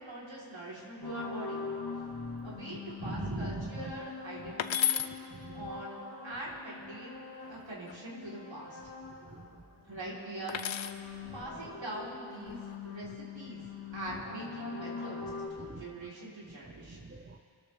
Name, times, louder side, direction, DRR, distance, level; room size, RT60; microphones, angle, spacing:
voice 1, 0.0-1.6 2.4-5.0 5.5-8.8 9.9-10.6 11.3-12.6 12.8-13.6 13.9-15.2 15.5-17.0, right 1 dB, 85° right, -6 dB, 3.8 m, -43 dB
sound 1, 1.0-9.6 9.9-15.5, left 4 dB, 55° left, 2.3 m, -43 dB
voice 2, 3.0-4.0 4.4-4.5 5.3-5.8 9.1-9.6 11.6-11.7 14.9-15.9 16.6-17.4, right 3 dB, 30° right, 6 dB, 0.8 m, -42 dB
sound 2, 4.6-5.1 7.4-8.0 10.5-11.0 12.3-12.8, left 9 dB, 85° left, 0.6 m, -32 dB
25.5 x 13.5 x 3.5 m, 2.3 s
wide cardioid pair, 70°, 45 cm